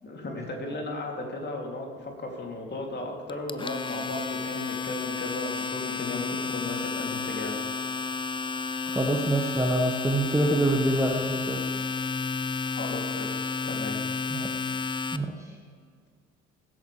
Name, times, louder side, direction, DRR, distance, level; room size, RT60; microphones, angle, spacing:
voice 1, 0.0-7.6 12.7-13.3 13.6-14.0, left 2 dB, 30° left, 0 dB, 3.1 m, -35 dB
Domestic sounds home sounds, 3.3-15.2, left 4 dB, 15° left, 0.6 m, -31 dB
voice 2, 8.9-11.6 14.3-14.7 15.1-15.3, right 1 dB, 10° right, 1 dB, 1.4 m, -26 dB
22.0 x 8.9 x 3.4 m, 2.1 s
figure-of-eight pair, 55°, 34 cm